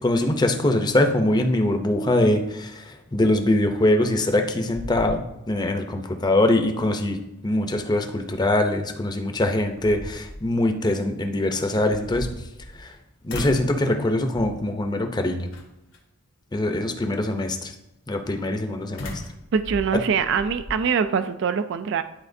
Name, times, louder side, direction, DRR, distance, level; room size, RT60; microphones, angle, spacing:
voice 1, 0.0-7.2 7.4-12.3 12.8-12.9 13.2-15.5 16.5-17.7 18.1-19.1, left 1 dB, 20° left, 5 dB, 0.6 m, -23 dB
sound 1, 4.7-5.7 6.1-6.2 8.9-9.0 9.6-10.5 11.8-12.9 13.3-13.8 14.3-14.7 15.5-16.0 19.0-20.8, left 1 dB, 90° left, 1.2 m, -36 dB
voice 2, 19.5-22.0, right 6 dB, 60° right, 11 dB, 0.4 m, -23 dB
10.5 x 4.2 x 2.6 m, 0.90 s
head